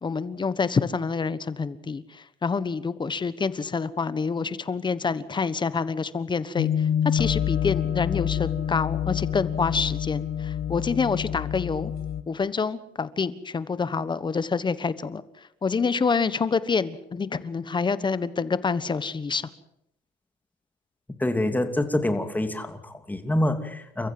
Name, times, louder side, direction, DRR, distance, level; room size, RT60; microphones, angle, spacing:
voice 1, 0.0-11.9 12.3-19.5, left 5 dB, 25° left, 15 dB, 1.3 m, -27 dB
sound 1, 6.6-12.2, left 9 dB, 65° left, 1.6 m, -27 dB
voice 2, 21.2-24.1, left 1 dB, 10° left, 7 dB, 2.8 m, -26 dB
30.0 x 15.0 x 7.8 m, 0.79 s
cardioid pair, 110°, 17 cm